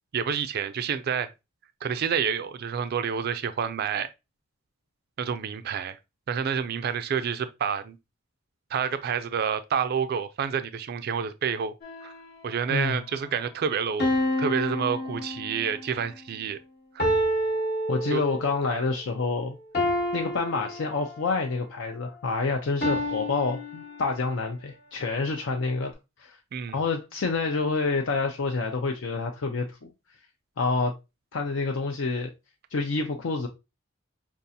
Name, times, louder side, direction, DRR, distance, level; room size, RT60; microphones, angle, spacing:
voice 1, 0.1-1.3 1.8-4.1 5.2-6.0 6.3-8.0 8.7-11.7 12.0-12.1 12.4-14.1 14.4-16.6 16.9-17.1 18.1-18.2 18.6-18.7 26.5-26.8, right 7 dB, 50° right, 0.3 m, -28 dB
sound 1, 11.8-12.6 14.0-15.8 17.0-18.6 19.7-21.4 22.8-24.4, left 1 dB, 55° left, 1.0 m, -29 dB
voice 2, 17.9-19.6 20.1-25.9 26.2-26.4 26.7-29.9 30.6-30.9 31.3-32.3 32.7-33.5, left 3 dB, 70° left, 0.5 m, -28 dB
5.2 x 2.4 x 2.7 m
head